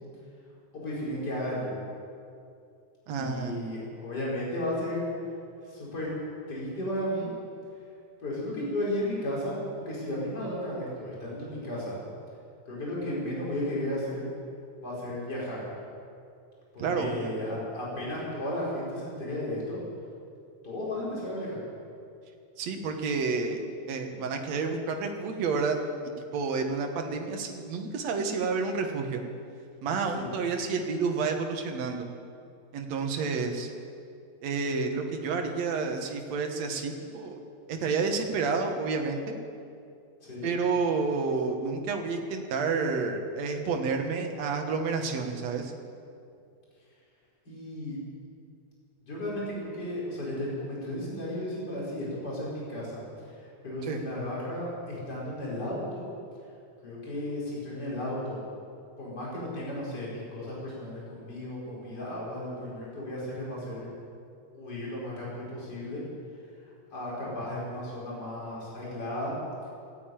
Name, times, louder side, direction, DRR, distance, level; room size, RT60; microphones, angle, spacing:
voice 1, 0.7-1.7 3.1-5.1 5.6-6.1 6.5-7.3 8.2-9.6 9.9-12.0 12.7-14.3 14.8-15.6 16.7-19.8 20.6-21.6 30.1-30.3 40.2-40.5 47.5-48.0 49.0-56.1 56.8-58.4 59.0-63.9 64.5-66.0 66.9-69.3, left 1 dB, 30° left, -6 dB, 5.1 m, -34 dB
voice 2, 3.1-3.6 16.8-17.4 22.6-23.6 23.9-25.8 26.3-29.2 29.8-32.1 32.7-33.7 34.4-37.4 37.7-39.4 40.4-45.7 53.8-54.0, right 4 dB, 65° right, 4 dB, 2.5 m, -30 dB
17.0 x 9.2 x 9.1 m, 2.5 s
omnidirectional pair, 3.3 m